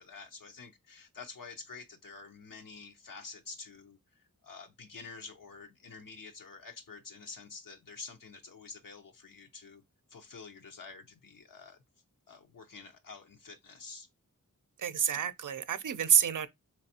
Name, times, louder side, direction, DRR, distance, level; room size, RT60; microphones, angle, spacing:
voice 1, 0.0-9.8 10.1-11.8 12.3-14.1, left 4 dB, 75° left, 0.7 m, -48 dB
voice 2, 14.8-16.5, right 8 dB, 65° right, 0.5 m, -28 dB
4.5 x 3.3 x 2.8 m
wide cardioid pair, 85°, 33 cm